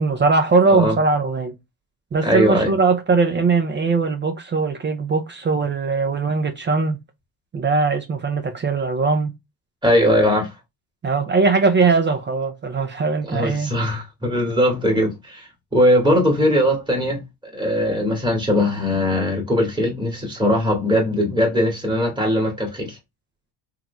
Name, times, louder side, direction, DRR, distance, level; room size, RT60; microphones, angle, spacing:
voice 1, 0.0-1.5 2.1-7.0 7.5-9.3 11.0-13.7, right 4 dB, 25° right, 0.5 m, -20 dB
voice 2, 2.2-2.7 9.8-10.5 13.2-23.0, equal, 10° right, 1.6 m, -20 dB
3.7 x 3.0 x 2.2 m
cardioid pair, 95°, 45 cm